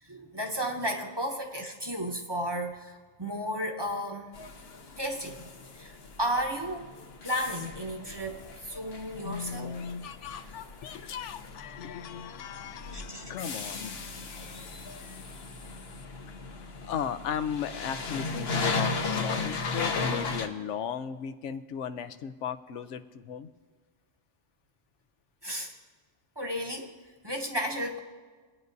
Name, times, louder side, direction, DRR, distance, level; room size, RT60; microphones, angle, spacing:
voice 1, 0.0-4.3 5.0-6.9 7.2-9.8 12.9-13.3 25.4-25.7 26.4-26.9 27.2-28.0, equal, 25° right, 2 dB, 0.9 m, -33 dB
sound 1, 4.3-20.5, left 4 dB, 60° left, 1.0 m, -36 dB
voice 2, 9.2-15.2 16.8-23.5, left 7 dB, 85° left, 11 dB, 0.9 m, -37 dB
24.5 x 9.4 x 2.6 m, 1.4 s
omnidirectional pair, 1.2 m